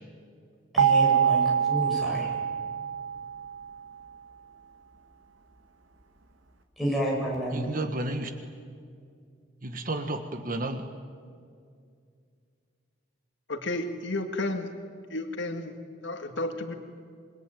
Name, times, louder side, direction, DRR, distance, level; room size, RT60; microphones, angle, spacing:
voice 1, 0.7-2.3 6.8-7.6, equal, ahead, -4 dB, 7.8 m, -30 dB
sound 1, 0.8-3.7, right 7 dB, 85° right, 2.5 m, -25 dB
voice 2, 7.5-8.3 9.6-10.8, right 2 dB, 45° right, 6 dB, 1.4 m, -32 dB
voice 3, 13.5-14.7 15.1-15.7 16.0-16.7, left 2 dB, 70° left, 5 dB, 2.1 m, -32 dB
26.5 x 22.0 x 9.2 m, 2.2 s
head